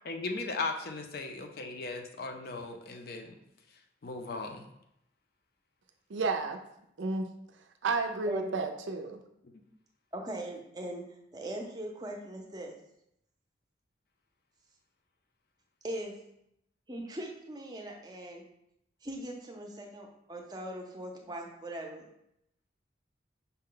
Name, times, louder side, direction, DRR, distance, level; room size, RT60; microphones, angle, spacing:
voice 1, 0.1-3.4 4.0-4.7 9.4-9.5, left 3 dB, 55° left, 5 dB, 0.4 m, -37 dB
voice 2, 6.1-6.6 7.0-7.3 7.8-9.2, right 3 dB, 85° right, 5 dB, 0.5 m, -31 dB
voice 3, 10.1-11.0 11.3-12.7 15.8-16.1 16.9-18.4 19.0-22.1, right 1 dB, 20° right, 1 dB, 0.5 m, -40 dB
5.4 x 2.2 x 3.8 m, 0.79 s
head